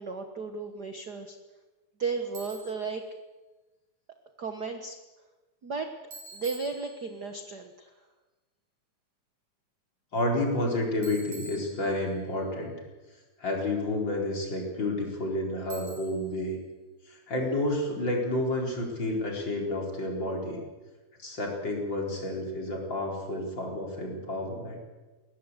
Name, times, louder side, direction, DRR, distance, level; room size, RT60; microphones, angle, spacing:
voice 1, 0.0-1.4 2.0-3.0 4.4-5.0 5.6-5.9 6.3-7.9, right 4 dB, 45° right, 6 dB, 1.4 m, -34 dB
Bicycle, 2.4-2.9 6.1-7.3 11.0-12.3 15.7-16.4, right 2 dB, 75° right, 7.3 m, -47 dB
voice 2, 10.1-12.7 13.4-16.6 17.1-20.6 21.2-24.8, left 1 dB, 35° left, 0 dB, 5.0 m, -30 dB
21.5 x 18.5 x 8.2 m, 1.2 s
omnidirectional pair, 3.4 m